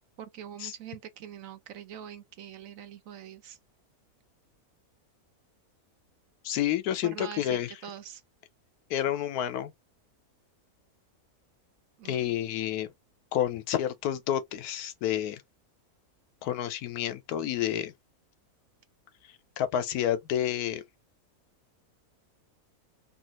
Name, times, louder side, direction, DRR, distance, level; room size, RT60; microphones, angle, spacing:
voice 1, 0.2-3.6 7.0-8.2 12.0-12.4, right 9 dB, 70° right, 0.9 m, -43 dB
voice 2, 6.4-7.7 8.9-9.7 12.0-12.9 13.3-15.4 16.4-17.9 19.6-20.8, left 11 dB, 80° left, 1.1 m, -29 dB
3.1 x 2.4 x 2.8 m
omnidirectional pair, 1.6 m